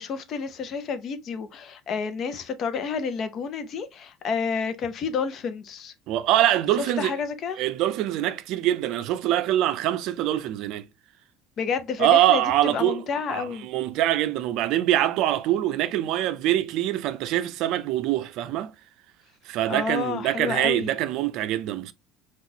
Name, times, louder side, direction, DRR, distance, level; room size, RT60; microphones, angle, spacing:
voice 1, 0.0-5.9 7.0-7.6 11.6-13.7 19.7-20.9, left 6 dB, 50° left, 0.6 m, -30 dB
voice 2, 6.1-7.1 7.6-10.9 12.0-13.0 13.3-18.7 19.5-21.9, right 13 dB, 65° right, 0.4 m, -24 dB
3.8 x 2.3 x 2.8 m
supercardioid pair, 105°, 0 cm